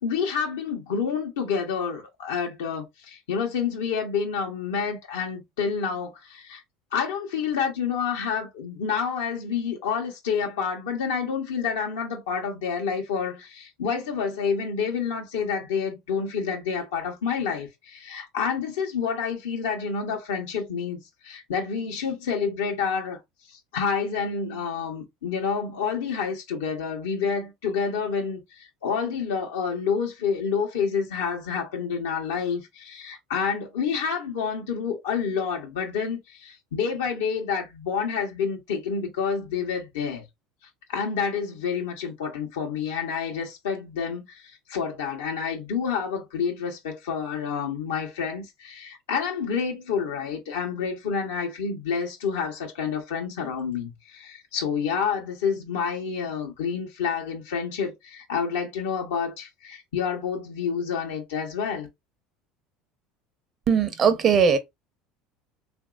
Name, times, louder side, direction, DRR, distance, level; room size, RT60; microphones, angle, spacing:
voice 1, 0.0-6.6 6.9-23.2 23.5-40.2 40.9-61.9, left 6 dB, 85° left, 0.8 m, -28 dB
voice 2, 63.7-64.6, right 6 dB, 40° right, 0.7 m, -19 dB
3.0 x 2.5 x 2.4 m
supercardioid pair, 95°, 0 cm